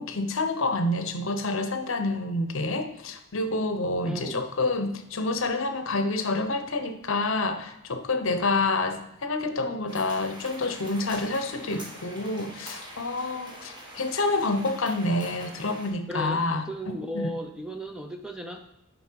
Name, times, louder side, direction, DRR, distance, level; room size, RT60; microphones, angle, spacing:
voice 1, 0.0-17.3, left 2 dB, 60° left, 8 dB, 0.8 m, -28 dB
voice 2, 4.0-4.5 16.1-18.7, equal, 5° right, 4 dB, 0.4 m, -36 dB
sound 1, 9.9-15.9, equal, 20° right, 1.4 m, -44 dB
7.1 x 5.4 x 4.5 m, 0.81 s
head